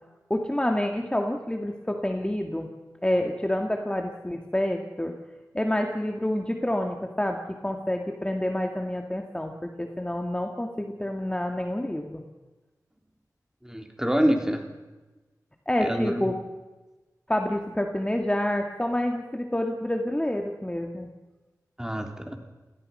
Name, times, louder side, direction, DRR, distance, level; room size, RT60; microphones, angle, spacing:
voice 1, 0.3-2.7 3.0-5.1 5.5-12.2 15.7-16.3 17.3-21.1, left 1 dB, 15° left, 3 dB, 2.1 m, -28 dB
voice 2, 13.6-14.7 15.8-16.3 21.8-22.4, equal, 10° right, 4 dB, 3.8 m, -26 dB
30.0 x 17.0 x 5.6 m, 1.2 s
cardioid pair, 45°, 7 cm